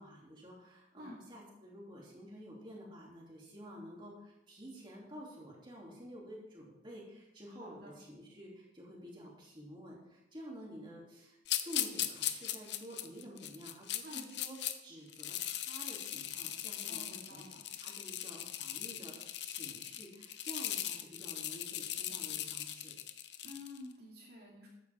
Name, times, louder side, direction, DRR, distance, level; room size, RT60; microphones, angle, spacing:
voice 1, 0.0-22.9, equal, 25° right, -4 dB, 3.0 m, -50 dB
voice 2, 7.5-7.9 14.0-14.3 16.9-17.6 23.4-24.7, left 1 dB, 55° right, -4 dB, 2.3 m, -50 dB
sound 1, 11.5-14.7 15.1-23.8, left 12 dB, 70° left, 0.7 m, -39 dB
13.0 x 9.0 x 3.6 m, 0.90 s
head